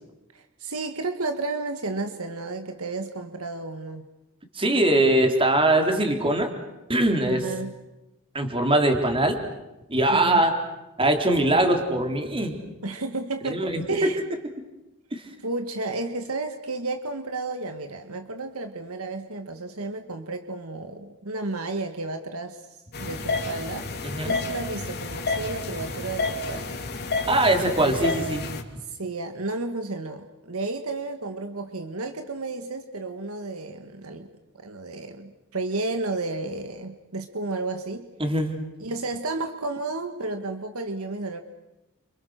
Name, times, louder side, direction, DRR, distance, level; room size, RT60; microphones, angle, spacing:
voice 1, 0.3-4.0 7.3-7.7 10.1-10.4 12.8-14.2 15.4-22.6 23.0-23.9 24.2-26.8 28.9-34.3 34.5-38.1 38.8-41.4, right 3 dB, 70° right, 6 dB, 1.8 m, -32 dB
voice 2, 4.6-6.5 6.9-7.4 8.3-9.4 9.9-10.5 11.0-12.6 13.5-14.1 15.1-15.2 24.0-24.3 27.3-28.5 38.2-38.6, right 1 dB, 25° right, 4 dB, 3.8 m, -22 dB
sound 1, 22.9-28.6, left 3 dB, 50° left, 2.9 m, -30 dB
30.0 x 27.5 x 6.6 m, 0.99 s
head